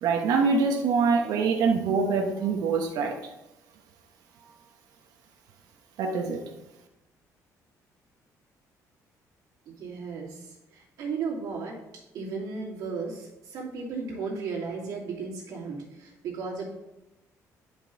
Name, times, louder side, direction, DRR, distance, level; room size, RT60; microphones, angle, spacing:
voice 1, 0.0-3.2 6.0-6.5, right 5 dB, 85° right, 3 dB, 1.1 m, -24 dB
voice 2, 9.7-11.8 12.1-16.7, right 4 dB, 65° right, -3 dB, 2.6 m, -35 dB
10.5 x 5.4 x 4.1 m, 0.94 s
cardioid pair, 180°, 6 cm